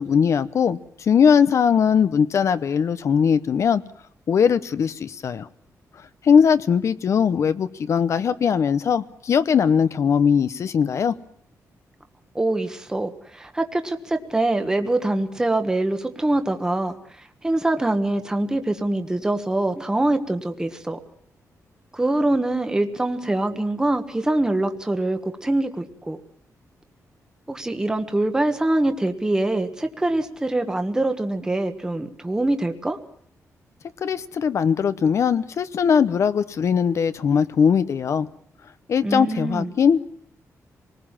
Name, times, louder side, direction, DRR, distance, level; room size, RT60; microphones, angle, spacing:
voice 1, 0.0-3.8 4.3-5.5 6.2-11.1 34.0-38.3 38.9-40.1, left 7 dB, 55° left, 13 dB, 0.9 m, -20 dB
voice 2, 12.3-21.0 21.9-26.2 27.5-33.0 39.0-39.7, right 2 dB, 10° right, 7 dB, 1.3 m, -24 dB
26.0 x 19.5 x 7.4 m, 0.62 s
wide cardioid pair, 150°, 6 cm